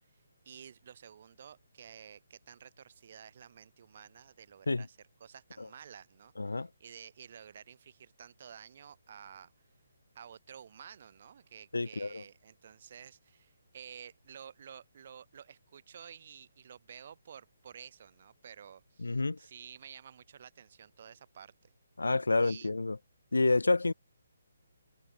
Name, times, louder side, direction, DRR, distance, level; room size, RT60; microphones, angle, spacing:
voice 1, 0.0-9.5 10.1-21.7 22.4-22.7, right 8 dB, 50° right, 7.4 m, -52 dB
voice 2, 6.4-6.7 11.7-12.2 19.0-19.4 22.0-23.0 23.3-23.9, left 3 dB, 90° left, 1.6 m, -29 dB
hypercardioid pair, 155°, 0 cm